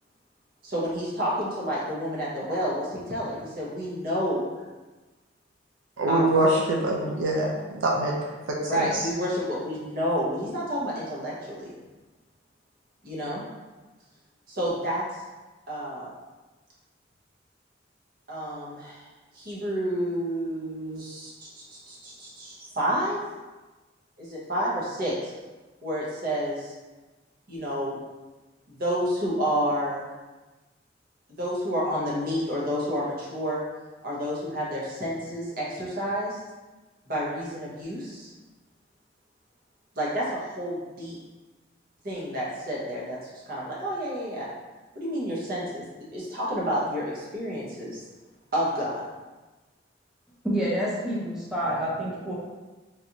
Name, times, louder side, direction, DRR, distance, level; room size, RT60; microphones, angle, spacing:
voice 1, 0.6-4.6 6.1-6.4 8.6-11.7 13.0-13.4 14.5-15.0 15.7-16.1 18.3-19.1 19.3-21.5 21.9-23.2 24.2-25.3 25.8-26.7 27.5-28.0 28.8-30.1 31.3-33.6 34.0-36.4 37.1-38.3 39.9-41.2 42.0-43.2 43.5-44.5 44.9-48.0 48.5-49.0, equal, 50° right, -6 dB, 1.1 m, -29 dB
voice 2, 6.0-9.1, right 2 dB, 85° right, -1 dB, 0.5 m, -25 dB
voice 3, 50.4-52.3, equal, 5° right, -7 dB, 0.6 m, -28 dB
3.2 x 2.6 x 2.9 m, 1.2 s
head